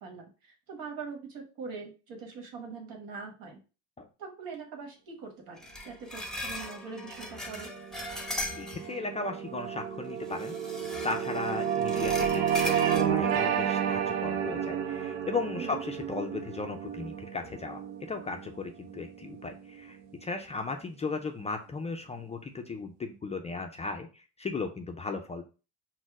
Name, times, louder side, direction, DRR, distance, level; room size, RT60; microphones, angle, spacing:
voice 1, 0.0-3.6 4.2-7.7 15.5-15.8, right 5 dB, 70° right, 3 dB, 1.3 m, -42 dB
sound 1, 5.6-9.1 10.3-13.0, left 1 dB, ahead, 0.7 m, -39 dB
sound 2, 7.2-19.8, right 8 dB, 90° right, 0.6 m, -31 dB
voice 2, 8.2-10.6 11.0-25.4, left 4 dB, 20° left, 4 dB, 0.3 m, -36 dB
4.2 x 2.1 x 4.6 m, 0.33 s
cardioid pair, 115°, 36 cm